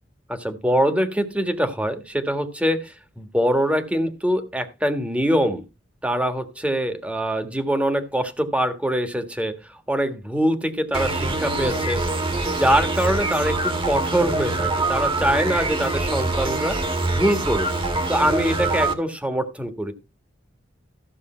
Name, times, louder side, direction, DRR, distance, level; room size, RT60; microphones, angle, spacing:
voice 1, 0.3-5.6 6.0-9.5 9.9-12.1 12.4-16.8 17.1-17.7 18.1-19.9, equal, 5° right, 8 dB, 1.5 m, -23 dB
sound 1, 10.9-18.9, right 2 dB, 25° right, 1.8 m, -24 dB
14.0 x 6.8 x 4.3 m, 0.27 s
head